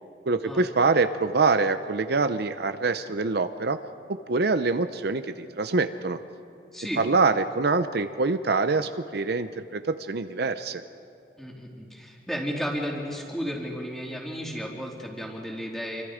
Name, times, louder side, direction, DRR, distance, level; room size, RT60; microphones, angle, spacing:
voice 1, 0.3-3.8 4.1-6.2 7.0-10.8, right 3 dB, 60° right, 10 dB, 0.7 m, -25 dB
voice 2, 6.7-7.0 11.4-16.0, equal, ahead, -2 dB, 3.5 m, -33 dB
28.0 x 24.5 x 5.1 m, 2.6 s
head